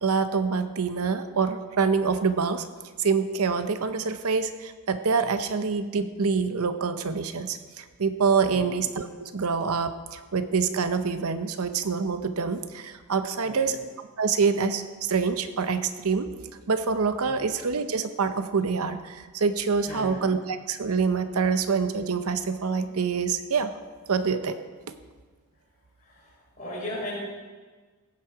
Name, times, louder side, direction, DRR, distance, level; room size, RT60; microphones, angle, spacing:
voice 1, 0.0-2.7 3.0-16.3 16.7-23.7 24.1-24.6, right 5 dB, 85° right, 10 dB, 0.8 m, -26 dB
voice 2, 13.4-13.8 17.2-17.5 19.9-20.2 26.0-27.2, left 1 dB, 35° left, -5 dB, 4.6 m, -37 dB
16.0 x 7.4 x 4.9 m, 1.4 s
head